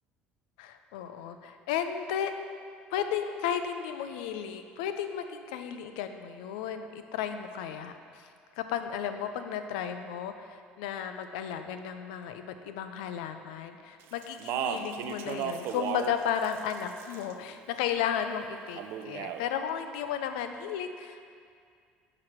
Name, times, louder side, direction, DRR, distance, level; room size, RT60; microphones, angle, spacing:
voice 1, 0.6-2.3 2.9-8.3 8.6-21.3, left 8 dB, 85° left, 8 dB, 0.4 m, -34 dB
Speech, 14.2-16.2 16.4-17.3 18.8-19.4, right 8 dB, 70° right, 0.4 m, -34 dB
5.6 x 4.9 x 4.5 m, 2.2 s
supercardioid pair, 90°, 4 cm